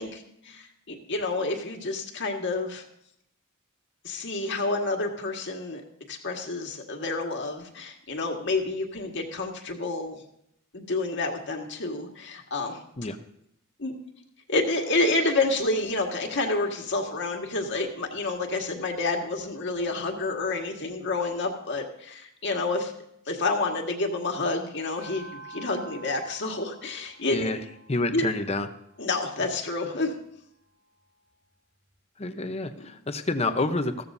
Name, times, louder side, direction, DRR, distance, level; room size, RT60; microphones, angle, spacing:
voice 1, 0.0-2.8 4.0-5.8 6.1-10.2 10.7-12.8 13.8-13.9 14.5-22.9 23.3-27.5 28.1-28.2 29.0-30.1 32.8-32.9, left 2 dB, 60° left, 2 dB, 1.8 m, -29 dB
sound 1, 25.0-29.5, right 3 dB, 70° right, 6.1 m, -48 dB
voice 2, 27.3-27.6 27.9-28.7 32.2-34.0, left 2 dB, 30° left, 8 dB, 0.8 m, -28 dB
15.0 x 14.0 x 2.7 m, 0.75 s
head